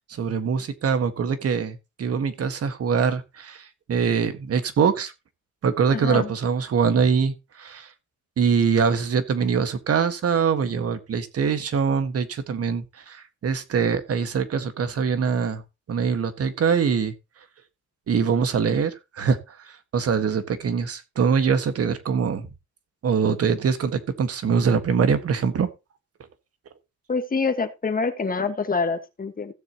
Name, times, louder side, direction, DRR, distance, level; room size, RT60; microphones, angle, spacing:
voice 1, 0.1-5.1 5.6-7.9 8.4-15.6 15.9-17.1 18.1-19.6 19.9-22.5 23.0-25.7, right 6 dB, 50° right, 1.7 m, -23 dB
voice 2, 5.9-6.3 27.1-29.5, left 4 dB, 30° left, 1.6 m, -26 dB
16.0 x 7.1 x 3.0 m
cardioid pair, 90°, 30 cm